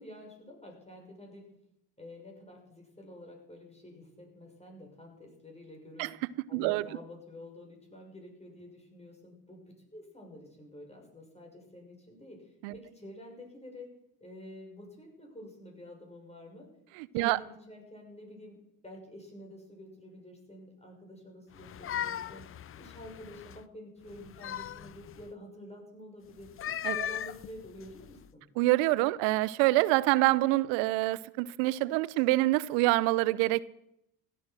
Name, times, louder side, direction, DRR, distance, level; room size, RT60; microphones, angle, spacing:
voice 1, 0.0-1.5 2.0-6.1 6.5-13.9 14.2-16.7 17.1-22.5 22.8-26.5 26.9-28.4, left 1 dB, 15° left, 6.5 m, -49 dB
voice 2, 6.5-6.8 12.6-12.7 17.1-17.4 26.8-26.9 28.6-33.6, right 19 dB, 75° right, 0.8 m, -26 dB
sound 1, 21.5-23.6 24.1-25.3 26.4-28.3, left 10 dB, 30° left, 0.5 m, -38 dB
16.0 x 12.0 x 6.1 m
hypercardioid pair, 65°, 46 cm